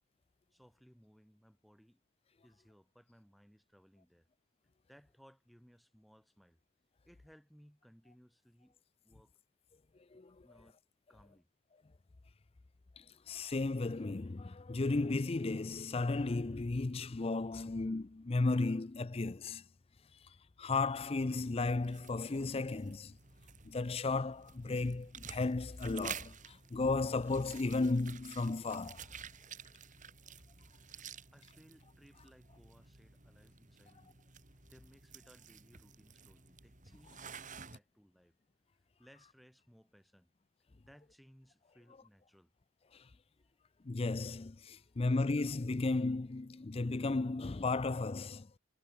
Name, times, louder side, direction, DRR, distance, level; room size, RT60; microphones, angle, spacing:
voice 1, 0.5-2.0 2.4-4.3 4.9-6.6 7.0-9.3 10.1-10.8 11.1-11.5 31.3-34.2 34.7-38.4 39.0-40.3 40.9-42.5 43.4-43.5 44.7-45.0, equal, ahead, 4.8 m, -63 dB
voice 2, 13.0-19.6 20.6-23.2 23.6-29.0 42.9-43.0 43.8-48.5, left 3 dB, 30° left, 0.5 m, -34 dB
sound 1, 20.9-37.8, right 7 dB, 35° right, 3.3 m, -52 dB
head